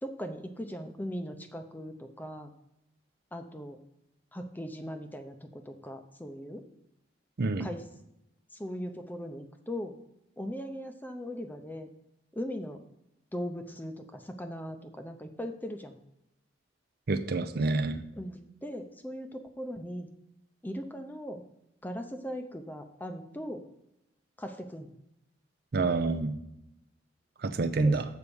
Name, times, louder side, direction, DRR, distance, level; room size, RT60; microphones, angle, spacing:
voice 1, 0.0-2.5 3.3-3.8 4.3-6.6 7.6-7.8 8.5-10.0 10.4-11.9 12.3-12.8 13.3-16.0 18.2-20.1 20.6-21.4 21.8-23.6 24.4-24.9 27.8-28.0, equal, 10° left, 7 dB, 0.6 m, -39 dB
voice 2, 17.1-18.0 25.7-26.4 27.4-28.1, right 3 dB, 55° right, 10 dB, 0.5 m, -27 dB
7.0 x 4.6 x 6.9 m, 0.84 s
head